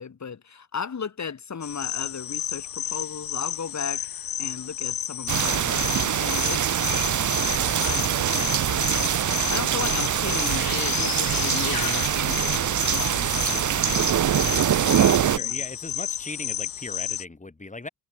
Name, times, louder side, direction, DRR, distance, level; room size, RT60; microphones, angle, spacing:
voice 1, 0.0-4.1 4.4-14.9 15.2-15.6, left 6 dB, 55° left, 4.5 m, -36 dB
sound 1, 1.6-17.2, left 10 dB, 90° left, 2.3 m, -31 dB
sound 2, 5.3-15.4, right 10 dB, 60° right, 0.7 m, -24 dB
voice 2, 15.2-17.9, left 2 dB, 20° left, 2.9 m, -38 dB
cardioid pair, 80°, 34 cm